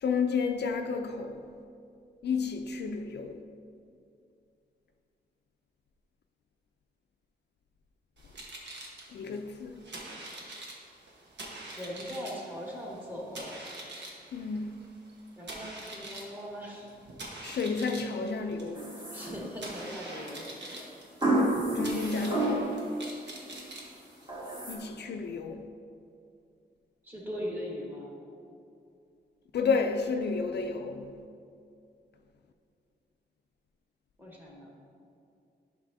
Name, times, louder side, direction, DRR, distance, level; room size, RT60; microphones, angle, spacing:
voice 1, 0.0-1.5 2.2-3.4 9.1-9.8 14.3-14.8 17.4-18.8 21.3-22.8 24.7-25.7 29.5-31.2, left 5 dB, 75° left, 0.4 m, -31 dB
sound 1, 8.2-24.6, right 2 dB, 85° right, 1.2 m, -45 dB
voice 2, 11.7-13.5 15.4-16.9 19.1-20.9 27.0-28.3 34.2-34.8, equal, 10° right, 1.4 m, -40 dB
sound 2, 18.7-19.8 21.2-22.9 23.3-23.8 24.3-24.7, right 1 dB, 25° right, 1.6 m, -30 dB
11.5 x 5.8 x 2.7 m
wide cardioid pair, 160°, 18 cm